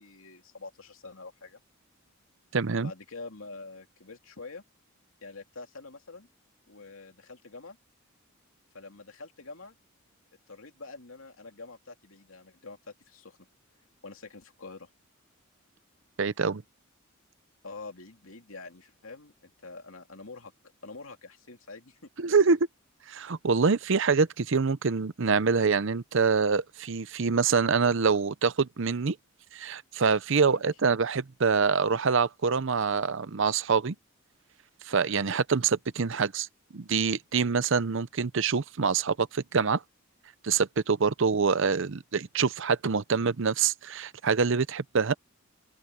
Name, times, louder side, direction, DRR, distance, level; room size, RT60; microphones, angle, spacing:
voice 1, 0.0-1.6 2.8-4.6 5.2-6.3 6.7-7.8 8.7-9.7 10.5-12.8 13.1-13.4 14.0-14.9 17.6-20.5 20.8-22.1 30.4-30.7, left 3 dB, 70° left, 2.8 m, -46 dB
voice 2, 2.5-2.9 16.2-16.6 22.2-22.7 23.1-29.2 29.5-33.9 34.9-36.5 36.7-39.8 40.4-45.1, right 5 dB, 60° right, 0.7 m, -25 dB
open air
head